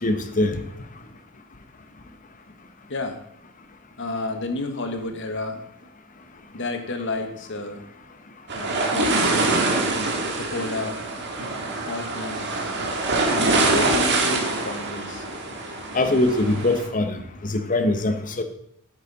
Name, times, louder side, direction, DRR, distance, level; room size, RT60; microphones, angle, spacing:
voice 1, 0.0-0.6 15.9-17.2 17.5-18.4, left 2 dB, 40° left, 7 dB, 0.9 m, -22 dB
voice 2, 2.9-3.2 4.0-5.6 6.5-7.8 8.5-9.6 10.4-11.0 11.8-12.5 13.3-15.2, left 2 dB, 60° left, 6 dB, 1.3 m, -30 dB
sound 1, 8.5-16.9, right 2 dB, 55° right, 1.6 m, -24 dB
9.0 x 8.9 x 4.0 m, 0.73 s
head